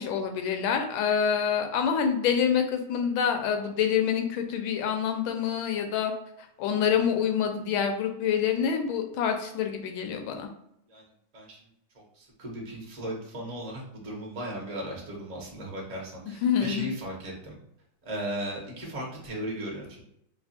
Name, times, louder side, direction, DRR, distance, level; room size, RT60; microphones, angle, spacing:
voice 1, 0.0-6.1 6.6-10.5 16.4-16.9, left 7 dB, 85° left, 5 dB, 1.4 m, -26 dB
voice 2, 12.2-17.6 18.0-20.0, right 1 dB, 35° right, -2 dB, 0.6 m, -36 dB
3.4 x 2.4 x 4.1 m, 0.77 s
omnidirectional pair, 2.2 m